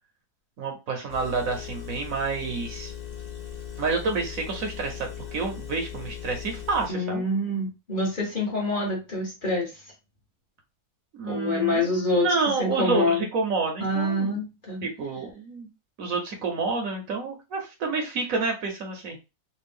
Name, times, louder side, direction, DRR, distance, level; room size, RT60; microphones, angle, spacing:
voice 1, 0.6-2.9 3.8-7.2 11.1-14.4 14.8-15.7 16.0-19.3, right 4 dB, 65° right, 2 dB, 1.2 m, -29 dB
Engine, 1.1-6.9, left 9 dB, 60° left, 0.4 m, -38 dB
voice 2, 6.9-9.7 11.3-12.2 12.6-13.3 13.8-14.8, left 2 dB, 35° left, -3 dB, 1.5 m, -26 dB
3.3 x 2.5 x 3.5 m, 0.27 s
omnidirectional pair, 1.6 m